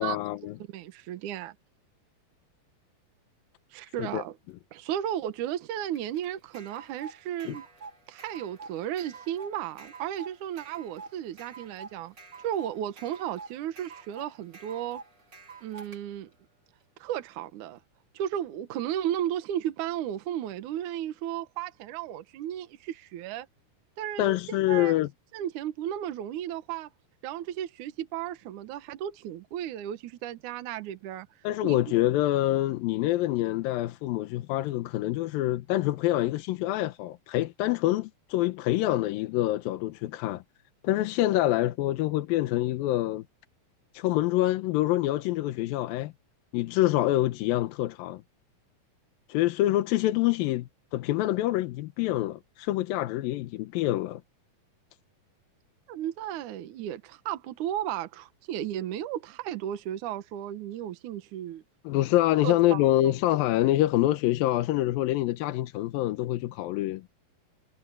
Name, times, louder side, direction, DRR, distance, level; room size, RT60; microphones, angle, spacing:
voice 1, 0.0-0.5 4.0-4.2 7.4-7.6 24.2-25.1 31.4-40.4 40.8-43.2 43.9-46.1 46.5-48.2 49.3-54.2 61.8-67.1, left 15 dB, 85° left, 2.6 m, -26 dB
voice 2, 0.7-1.6 3.7-4.4 4.7-7.7 8.1-12.1 12.4-15.0 15.6-16.3 17.0-17.8 18.1-23.5 24.0-25.0 25.3-26.9 27.2-31.3 31.6-31.8 55.9-61.6 62.4-63.1, right 11 dB, 65° right, 2.4 m, -34 dB
sound 1, 5.9-16.0, right 4 dB, 30° right, 4.0 m, -47 dB
omnidirectional pair, 4.1 m